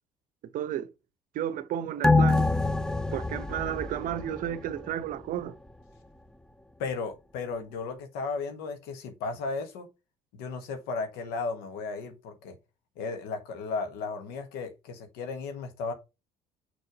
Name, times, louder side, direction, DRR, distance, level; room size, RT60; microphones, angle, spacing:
voice 1, 0.5-0.9 1.3-2.5 3.1-5.6, right 10 dB, 55° right, 0.7 m, -32 dB
sound 1, 2.0-4.9 5.3-5.4, left 3 dB, 5° left, 0.5 m, -25 dB
voice 2, 6.8-9.9 10.3-12.5 13.0-15.9, left 4 dB, 65° left, 1.3 m, -35 dB
6.4 x 3.4 x 5.1 m
hypercardioid pair, 55°, 17 cm